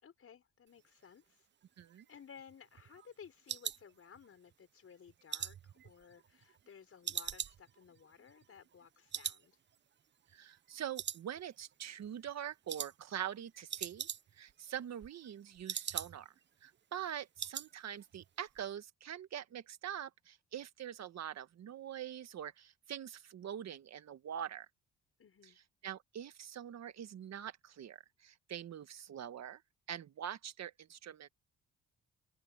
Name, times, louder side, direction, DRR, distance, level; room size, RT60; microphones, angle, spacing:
voice 1, 0.0-1.5 2.1-9.6 25.2-25.6, left 7 dB, 50° left, 5.4 m, -57 dB
sound 1, 1.8-4.5 4.9-6.7 7.0-8.9 9.1-9.5 9.7-9.8 10.3-10.7 11.0-11.7 12.0-12.3 12.7-12.9 13.2-13.3 13.5-14.5 14.8-16.4 16.7-16.8 17.1-17.7 18.0-18.3 18.6-18.7, right 9 dB, 35° right, 0.6 m, -42 dB
voice 2, 10.3-16.3 16.6-24.7 25.8-29.6 29.9-31.3, right 10 dB, 60° right, 1.6 m, -44 dB
open air
cardioid pair, 90°, 30 cm